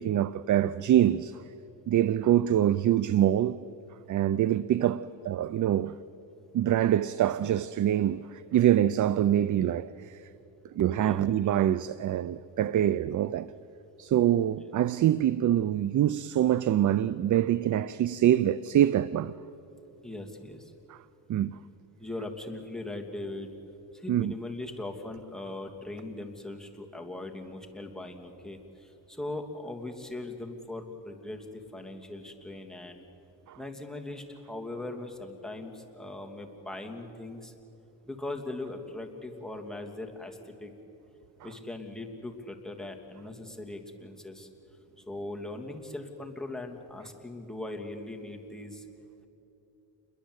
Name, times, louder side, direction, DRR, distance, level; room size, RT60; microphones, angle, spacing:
voice 1, 0.0-1.4 1.9-3.6 4.1-6.0 6.5-10.2 10.7-13.5 14.0-19.3 20.9-21.0 21.3-21.6 24.1-24.3 33.5-33.6, right 11 dB, 45° right, 0.6 m, -25 dB
voice 2, 10.9-11.3 20.0-20.7 22.0-23.5 23.9-33.1 33.5-37.5 38.1-40.7 41.4-44.5 45.1-48.8, left 2 dB, ahead, 2.9 m, -40 dB
28.0 x 22.5 x 8.2 m
cardioid pair, 105°, 44 cm